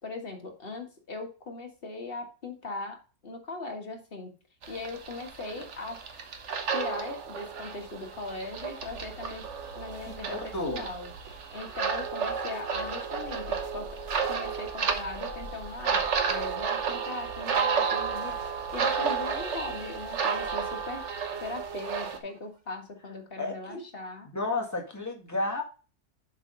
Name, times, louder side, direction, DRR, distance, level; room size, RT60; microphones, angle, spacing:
voice 1, 0.0-3.0 3.2-4.3 4.7-6.0 6.7-9.5 9.7-14.0 14.3-24.3, left 3 dB, 35° left, 2 dB, 1.7 m, -39 dB
sound 1, 4.6-22.2, right 6 dB, 50° right, 1.2 m, -32 dB
sound 2, 7.2-22.7, right 2 dB, 80° right, 2.6 m, -49 dB
voice 2, 10.1-10.9 23.4-23.8 24.3-25.6, left 2 dB, 10° left, 1 dB, 1.6 m, -32 dB
7.4 x 4.4 x 5.2 m, 0.34 s
omnidirectional pair, 1.6 m